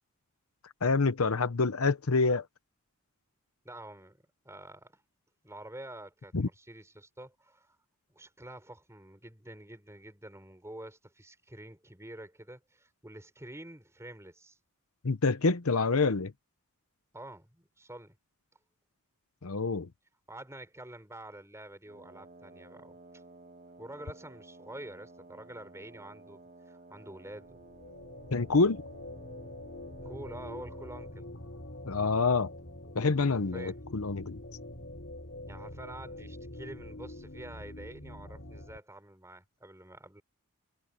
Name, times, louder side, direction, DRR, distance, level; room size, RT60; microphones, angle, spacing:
voice 1, 0.8-2.4 6.3-6.5 15.0-16.3 19.4-19.9 28.3-28.8 31.9-32.5 32.9-34.4, left 4 dB, 70° left, 0.8 m, -27 dB
voice 2, 3.6-4.2 4.4-5.0 5.4-7.7 8.1-14.6 17.1-18.2 20.3-23.0 23.8-26.4 26.7-27.6 30.0-31.3 33.5-33.8 35.4-40.2, right 1 dB, 15° right, 4.9 m, -47 dB
Wind instrument woodwind instrument, 21.8-31.2, right 3 dB, 40° right, 2.6 m, -54 dB
sound 1, 27.3-38.8, left 1 dB, 50° left, 5.5 m, -45 dB
head